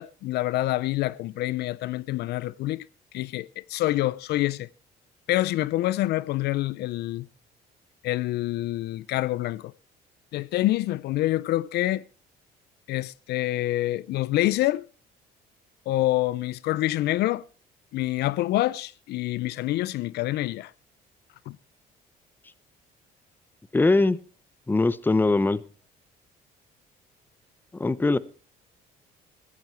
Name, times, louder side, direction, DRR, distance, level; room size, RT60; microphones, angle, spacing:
voice 1, 0.0-2.9 3.1-4.7 5.3-7.3 8.0-9.7 10.3-12.0 12.9-14.8 15.9-17.4 17.9-20.7 21.5-21.6, left 16 dB, 75° left, 0.6 m, -26 dB
voice 2, 23.7-24.2 24.7-25.6 27.7-28.2, left 3 dB, 10° left, 0.7 m, -21 dB
16.0 x 14.0 x 4.5 m
cardioid pair, 110°, 17 cm